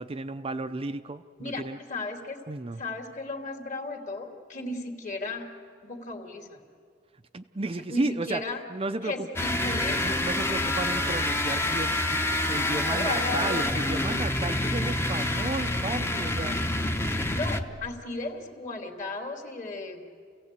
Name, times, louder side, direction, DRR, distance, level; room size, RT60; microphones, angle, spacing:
voice 1, 0.0-1.8 2.5-2.8 7.3-8.4 8.7-9.3 10.0-12.0 12.4-16.6, right 2 dB, 30° right, 8 dB, 0.6 m, -33 dB
voice 2, 1.9-2.4 2.8-5.5 5.8-6.6 7.9-8.6 9.0-10.2 10.5-10.8 12.8-13.8 14.7-14.8 17.2-20.0, left 2 dB, 45° left, 3 dB, 2.6 m, -35 dB
sound 1, 9.4-17.9, left 1 dB, 15° left, 0.9 m, -27 dB
29.5 x 16.5 x 8.2 m, 2.1 s
head